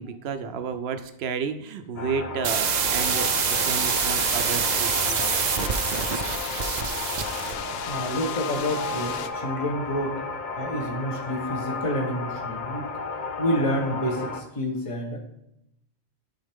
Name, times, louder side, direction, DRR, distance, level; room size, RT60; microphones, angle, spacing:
voice 1, 0.0-5.2, right 6 dB, 75° right, 9 dB, 0.9 m, -32 dB
sound 1, 2.0-14.4, left 4 dB, 50° left, 0.9 m, -33 dB
sound 2, 2.4-7.6, right 7 dB, 50° right, 0.6 m, -26 dB
sound 3, 3.0-9.3, left 8 dB, 75° left, 0.8 m, -36 dB
voice 2, 7.8-10.2 10.6-12.9 13.4-15.2, equal, 30° left, 1 dB, 1.2 m, -28 dB
12.0 x 4.3 x 3.6 m, 0.81 s
omnidirectional pair, 1.1 m